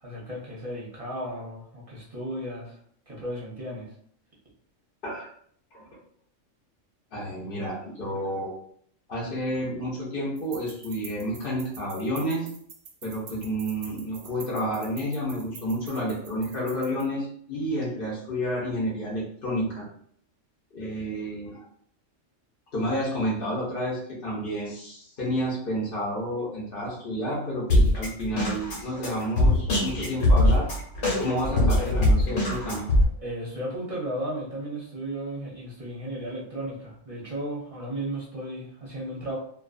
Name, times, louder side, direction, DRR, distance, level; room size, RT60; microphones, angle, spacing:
voice 1, 0.0-2.8 3.1-3.9 33.2-39.4, right 1 dB, 35° right, -5 dB, 0.6 m, -34 dB
voice 2, 7.1-8.5 9.1-12.5 13.0-19.9 20.7-21.7 22.7-30.7 31.2-32.8, equal, 50° left, -6 dB, 0.8 m, -30 dB
sound 1, 10.4-17.0, right 5 dB, 65° right, 0.8 m, -46 dB
Drum kit, 27.7-33.0, left 1 dB, 80° left, 1.2 m, -22 dB
2.6 x 2.3 x 2.4 m, 0.63 s
omnidirectional pair, 1.3 m